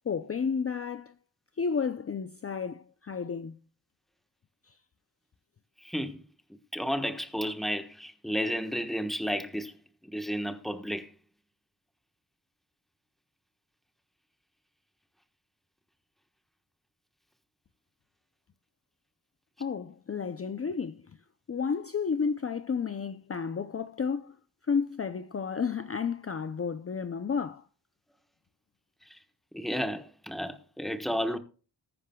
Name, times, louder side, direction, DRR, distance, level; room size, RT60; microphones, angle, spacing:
voice 1, 0.1-1.1 1.6-3.6 19.6-21.0 21.5-24.4 24.7-27.6, left 6 dB, 35° left, 0.5 m, -31 dB
voice 2, 5.8-6.2 6.7-9.7 10.0-11.1 29.5-31.4, equal, ahead, 1.2 m, -32 dB
20.0 x 9.9 x 2.3 m
wide cardioid pair, 165°, 41 cm